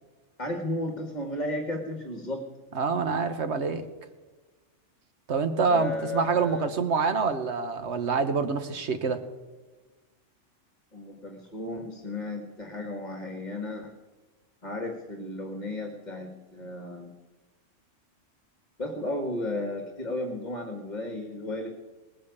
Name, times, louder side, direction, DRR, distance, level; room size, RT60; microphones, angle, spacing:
voice 1, 0.4-2.4 5.7-6.7 10.9-13.9 14.6-17.1 18.8-21.7, left 1 dB, 35° left, 4 dB, 1.6 m, -34 dB
voice 2, 2.7-3.8 5.3-9.2, right 5 dB, 65° right, 9 dB, 1.4 m, -26 dB
18.5 x 8.6 x 8.2 m, 1.2 s
omnidirectional pair, 1.3 m